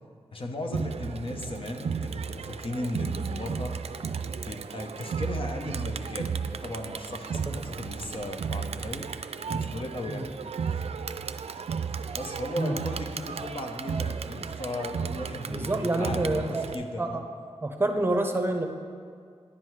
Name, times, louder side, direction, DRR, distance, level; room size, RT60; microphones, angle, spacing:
voice 1, 0.3-3.7 4.4-9.1 9.5-10.3 12.1-17.2, left 1 dB, 55° left, 3 dB, 0.9 m, -36 dB
Crowd, 0.7-16.7, right 6 dB, 70° right, 0.4 m, -34 dB
voice 2, 15.5-16.7 17.0-17.2 17.6-18.7, right 2 dB, 20° right, 5 dB, 0.7 m, -27 dB
10.0 x 7.6 x 4.7 m, 2.1 s
wide cardioid pair, 115°, 11 cm